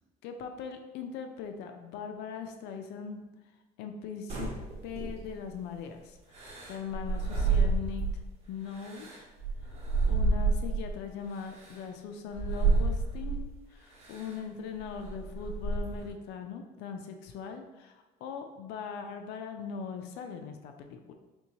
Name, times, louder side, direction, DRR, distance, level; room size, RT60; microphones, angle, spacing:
voice 1, 0.2-3.3 3.8-4.5 4.8-8.0 8.5-9.3 10.1-21.1, left 6 dB, 90° left, 5 dB, 0.4 m, -40 dB
sound 1, 4.3-5.5 6.3-8.3 8.7-10.9 11.6-11.7 12.3-13.5 14.0-14.3 14.8-16.1, right 3 dB, 40° right, 1.3 m, -29 dB
4.4 x 3.4 x 2.8 m, 1.1 s
cardioid pair, 110°, 17 cm